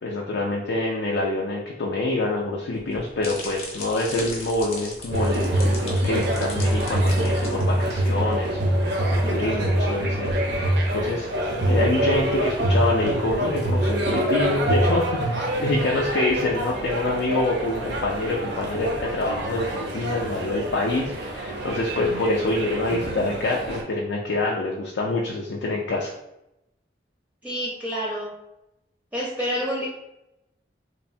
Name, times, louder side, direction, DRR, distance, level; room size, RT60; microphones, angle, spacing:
voice 1, 0.0-11.3 11.7-26.1, left 2 dB, 75° left, -2 dB, 0.4 m, -26 dB
sound 1, 2.7-8.1, left 2 dB, 35° left, 0.6 m, -38 dB
sound 2, 5.1-23.8, right 1 dB, 70° right, 0.5 m, -25 dB
voice 2, 27.4-28.3 29.1-29.9, equal, 10° right, -5 dB, 0.5 m, -28 dB
3.0 x 2.1 x 2.6 m, 0.86 s
head